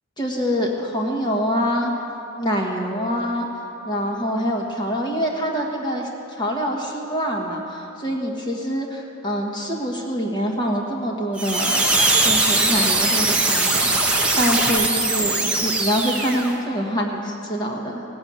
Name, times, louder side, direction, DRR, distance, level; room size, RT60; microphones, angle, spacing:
voice 1, 0.2-1.9 2.4-3.5 3.8-6.1 6.4-11.9 12.2-13.9 14.4-18.0, equal, 20° left, 0 dB, 1.3 m, -25 dB
sound 1, 11.4-16.5, right 2 dB, 5° right, 0.9 m, -20 dB
17.0 x 7.0 x 8.0 m, 2.8 s
head